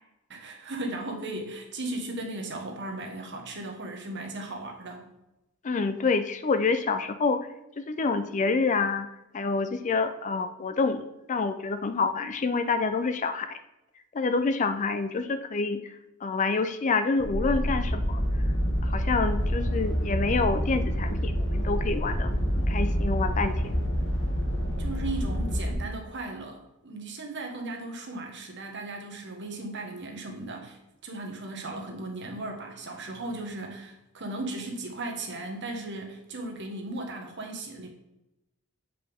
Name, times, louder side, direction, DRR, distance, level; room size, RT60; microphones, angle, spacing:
voice 1, 0.3-5.0 24.8-37.9, right 2 dB, 60° right, 3 dB, 1.3 m, -36 dB
voice 2, 5.6-7.4 7.8-9.1 9.3-13.6 14.1-15.8 16.2-18.2 18.8-22.3 22.6-23.8, left 4 dB, 35° left, 10 dB, 0.4 m, -27 dB
sound 1, 17.2-25.7, equal, 60° left, 1.2 m, -27 dB
7.6 x 5.2 x 3.5 m, 0.92 s
head